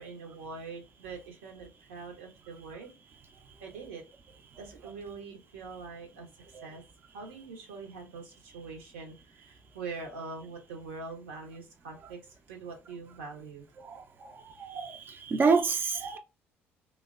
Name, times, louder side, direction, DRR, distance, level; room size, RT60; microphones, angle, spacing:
voice 1, 0.0-2.9 3.6-4.0 4.6-6.8 7.1-13.6, right 4 dB, 80° right, 0.7 m, -43 dB
voice 2, 14.6-16.2, right 4 dB, 35° right, 0.4 m, -27 dB
3.2 x 2.1 x 2.3 m
hypercardioid pair, 55°, 6 cm